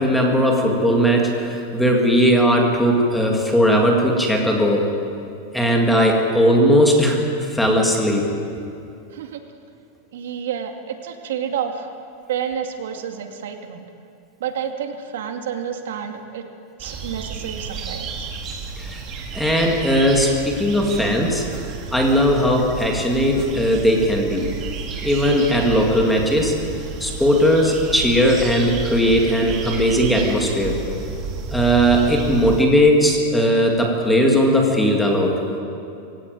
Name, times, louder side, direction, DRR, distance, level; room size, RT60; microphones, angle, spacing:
voice 1, 0.0-4.9 5.5-8.3 18.8-19.0 19.3-21.4 21.9-24.5 25.0-26.6 27.0-30.8 31.5-35.4, equal, 5° left, 0 dB, 2.1 m, -18 dB
voice 2, 10.1-11.9 12.3-13.8 14.4-16.4 16.8-18.3, right 8 dB, 75° right, 4 dB, 2.4 m, -29 dB
sound 1, 16.8-32.6, right 5 dB, 25° right, 2.1 m, -31 dB
22.0 x 17.0 x 9.3 m, 2.6 s
supercardioid pair, 180°, 0 cm